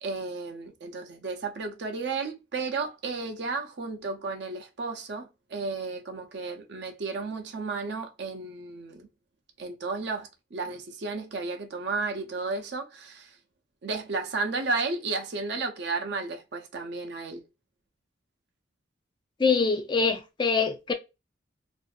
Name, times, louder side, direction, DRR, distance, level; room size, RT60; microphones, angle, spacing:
voice 1, 0.0-9.1 9.6-13.3 13.8-17.4, right 3 dB, 60° right, 0.5 m, -33 dB
voice 2, 19.4-20.9, left 4 dB, 25° left, 0.3 m, -24 dB
2.5 x 2.3 x 2.4 m
head